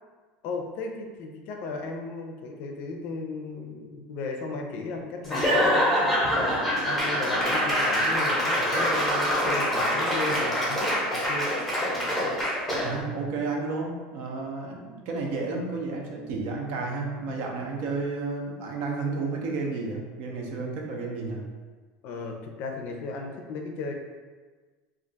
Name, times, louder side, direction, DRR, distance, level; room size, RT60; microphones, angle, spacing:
voice 1, 0.4-11.5 22.0-23.9, left 3 dB, 55° left, 3 dB, 0.4 m, -35 dB
Laughter / Applause / Crowd, 5.2-13.0, equal, ahead, 0.8 m, -25 dB
voice 2, 12.8-21.5, right 3 dB, 60° right, 0 dB, 0.6 m, -32 dB
2.4 x 2.3 x 3.8 m, 1.4 s
supercardioid pair, 135°, 4 cm